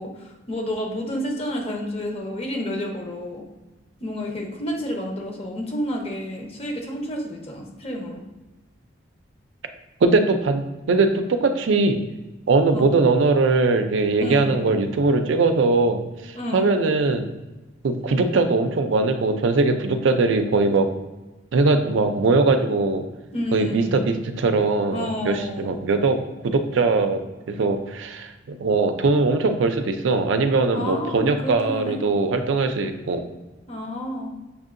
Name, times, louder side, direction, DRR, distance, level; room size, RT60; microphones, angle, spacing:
voice 1, 0.0-3.4 4.0-8.2 12.7-12.9 14.2-14.6 16.3-16.8 23.3-24.1 24.9-25.7 30.7-32.0 33.7-34.3, left 1 dB, 30° left, 0 dB, 0.7 m, -30 dB
voice 2, 10.0-12.0 12.5-17.2 17.8-20.9 21.5-23.0 23.5-26.2 26.4-27.2 27.5-33.2, right 3 dB, 75° right, 7 dB, 0.4 m, -21 dB
6.7 x 2.7 x 2.5 m, 1.1 s
head